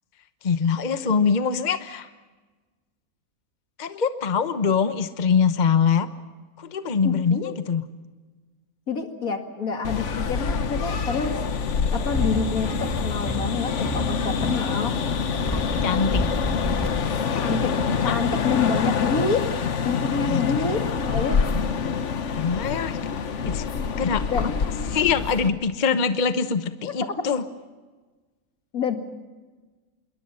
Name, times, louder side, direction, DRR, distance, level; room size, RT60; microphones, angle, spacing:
voice 1, 0.4-2.1 3.8-6.1 6.6-7.4 7.7-7.8 15.5-16.2 17.9-18.2 20.3-20.4 22.4-23.0 23.4-23.7 24.0-24.5 24.9-27.4, left 6 dB, 35° left, 10 dB, 1.0 m, -23 dB
voice 2, 7.0-7.6 8.9-11.3 11.9-14.9 17.3-17.7 18.0-19.5 19.8-21.4 24.3-24.5 26.9-27.2 28.7-29.0, left 5 dB, 75° left, 5 dB, 2.6 m, -27 dB
sound 1, 9.8-25.5, left 6 dB, 55° left, 1.3 m, -26 dB
sound 2, 12.1-17.7, left 1 dB, 15° left, 1.2 m, -31 dB
27.0 x 22.5 x 5.7 m, 1.3 s
omnidirectional pair, 1.5 m